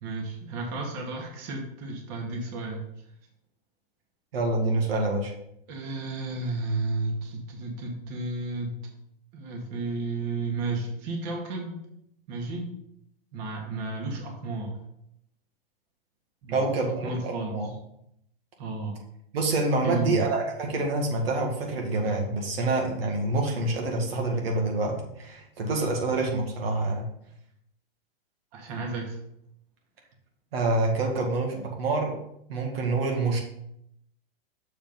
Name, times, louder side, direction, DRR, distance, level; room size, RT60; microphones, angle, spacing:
voice 1, 0.0-2.8 5.7-8.8 9.3-11.8 12.3-12.7 13.3-14.8 16.4-17.7 18.6-19.0 19.8-20.3 28.5-29.2, right 3 dB, 40° right, 0 dB, 2.1 m, -33 dB
voice 2, 4.3-5.3 16.5-17.7 19.3-27.1 30.5-32.2 32.5-33.4, right 2 dB, 75° right, 1 dB, 2.0 m, -27 dB
7.1 x 5.1 x 5.4 m, 0.75 s
hypercardioid pair, 155°, 30 cm